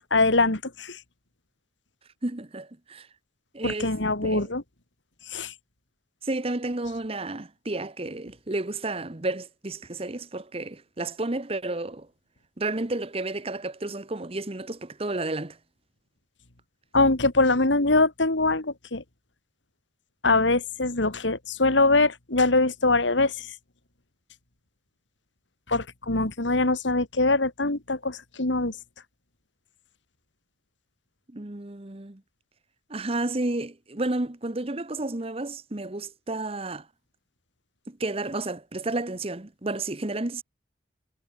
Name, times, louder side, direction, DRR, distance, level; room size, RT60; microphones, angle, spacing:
voice 1, 0.1-1.0 3.6-4.6 5.3-5.5 16.9-19.0 20.2-23.5 25.7-28.7, left 2 dB, 85° left, 2.7 m, -23 dB
voice 2, 2.2-3.1 3.5-3.9 4.2-4.5 6.2-12.1 12.6-15.6 31.3-32.2 32.9-36.8 37.9-40.4, right 2 dB, 30° right, 1.1 m, -31 dB
head